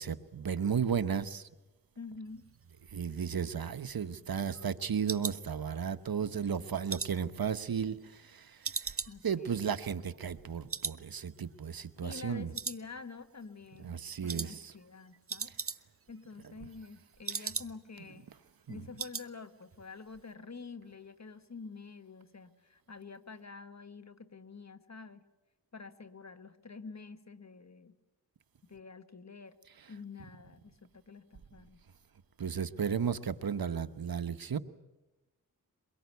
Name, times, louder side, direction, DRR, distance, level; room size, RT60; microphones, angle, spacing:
voice 1, 0.0-1.4 2.9-8.9 9.2-12.5 13.8-14.7 16.4-16.7 17.3-17.4 18.7-18.9 29.8-29.9 32.4-34.6, right 7 dB, 70° right, 12 dB, 1.1 m, -34 dB
voice 2, 2.0-2.5 9.1-9.8 12.0-15.5 16.1-18.3 18.7-25.2 25.7-28.0 28.6-29.6 29.9-31.8, left 4 dB, 45° left, 11 dB, 1.6 m, -48 dB
Mouse clicks (PC), 3.4-6.1 6.5-8.3 8.6-10.4 10.7-11.0 11.3-11.4 11.9-12.3 12.5-13.3 13.6-13.9 14.3-14.5 14.8-14.9 15.1-16.1 16.4-18.0 18.3-18.4 18.7-19.3 19.6-19.9 20.1-20.2, right 5 dB, 35° right, 0.8 m, -40 dB
23.0 x 22.5 x 8.3 m, 1.1 s
cardioid pair, 50°, 37 cm